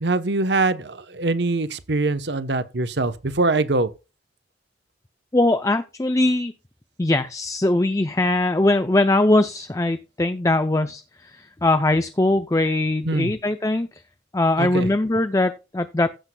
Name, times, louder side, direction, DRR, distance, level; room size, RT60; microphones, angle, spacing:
voice 1, 0.0-3.9 13.0-13.3 14.6-14.9, right 2 dB, 70° right, 1.0 m, -23 dB
voice 2, 5.3-6.5 7.0-13.9 14.3-16.1, left 2 dB, 20° left, 0.5 m, -21 dB
15.5 x 7.9 x 2.3 m
head